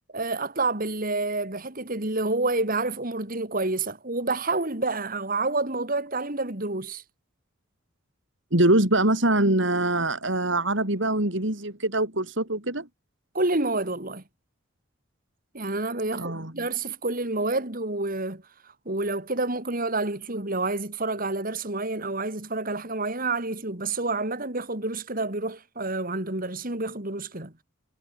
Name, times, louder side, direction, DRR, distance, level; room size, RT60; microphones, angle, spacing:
voice 1, 0.1-7.0 13.3-14.2 15.5-18.4 18.8-27.5, right 2 dB, 45° right, 3.0 m, -28 dB
voice 2, 8.5-12.9 16.2-16.5, right 1 dB, 60° right, 4.7 m, -23 dB
head